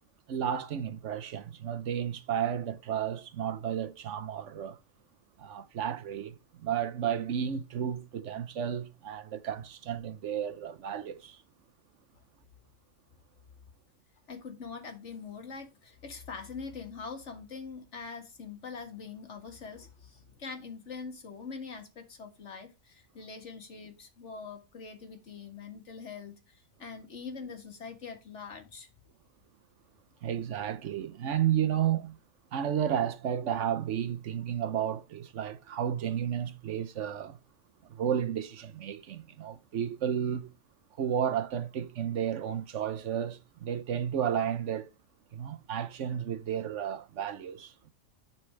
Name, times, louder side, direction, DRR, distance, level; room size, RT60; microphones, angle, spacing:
voice 1, 0.3-4.8 5.4-11.4 30.2-32.2 32.5-37.4 37.9-40.5 41.0-44.9 45.3-47.9, right 9 dB, 65° right, 1.0 m, -32 dB
voice 2, 14.3-28.9, left 5 dB, 60° left, 2.0 m, -43 dB
11.5 x 4.4 x 3.1 m
omnidirectional pair, 1.4 m